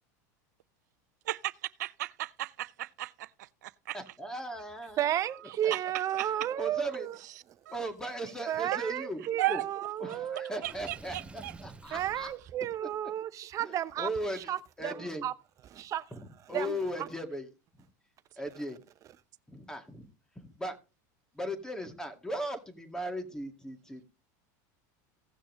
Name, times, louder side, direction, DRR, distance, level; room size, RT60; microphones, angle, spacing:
voice 1, 1.8-4.0 5.7-6.3 7.7-7.8 8.7-8.8 9.4-9.6 10.6-11.5, right 16 dB, 90° right, 0.5 m, -35 dB
voice 2, 3.9-5.0 5.6-5.7 6.3-7.1 7.7-9.6 10.0-12.3 12.8-12.9 13.6-15.3 16.1-17.5 18.4-18.8 19.5-20.1 20.4-20.8 21.3-24.0, equal, 5° left, 1.9 m, -38 dB
voice 3, 5.0-7.2 8.5-10.5 11.9-14.1 14.4-15.3 15.7-16.1 16.5-17.1, right 11 dB, 35° right, 0.8 m, -33 dB
Water / Sink (filling or washing), 10.6-12.4, right 3 dB, 15° right, 0.7 m, -49 dB
16.5 x 6.4 x 3.1 m
supercardioid pair, 125°, 9 cm